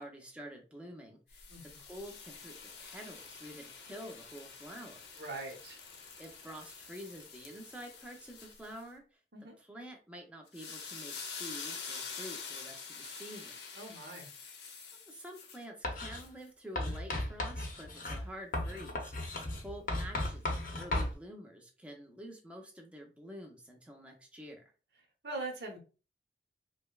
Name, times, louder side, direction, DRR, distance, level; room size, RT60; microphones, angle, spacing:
voice 1, 0.0-1.5 1.8-5.1 6.2-9.2 9.6-13.6 15.1-24.6, equal, 5° right, 0 dB, 0.7 m, -48 dB
sound 1, 1.3-8.8 10.5-15.6 16.2-16.3, left 5 dB, 80° left, 0.9 m, -47 dB
voice 2, 1.5-1.8 5.1-5.8 9.3-9.5 13.7-14.3 25.2-25.8, right 2 dB, 65° right, 1 dB, 1.0 m, -42 dB
Writing, 15.8-16.2 16.8-21.1, left 1 dB, 50° left, 0.8 m, -35 dB
5.1 x 2.2 x 2.4 m, 0.35 s
head